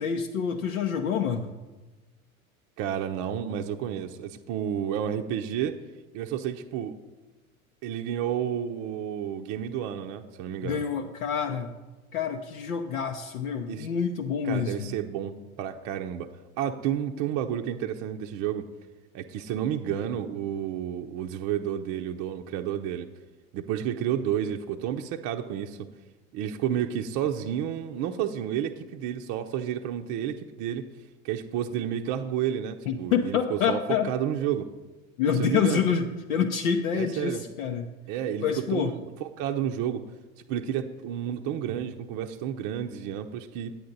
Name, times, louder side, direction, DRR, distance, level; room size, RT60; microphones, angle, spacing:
voice 1, 0.0-1.5 10.6-11.7 12.1-14.9 32.9-34.1 35.2-37.9 38.4-38.9, left 7 dB, 70° left, 3 dB, 0.7 m, -27 dB
voice 2, 2.8-5.8 6.1-7.0 7.8-10.8 13.7-13.9 14.4-16.3 16.6-18.7 19.1-23.1 23.5-25.9 26.3-30.8 31.2-34.7 35.3-35.9 36.9-37.4 38.1-40.1 40.5-43.8, right 9 dB, 45° right, 4 dB, 0.6 m, -31 dB
9.2 x 8.6 x 4.0 m, 1.2 s
hypercardioid pair, 80°, 42 cm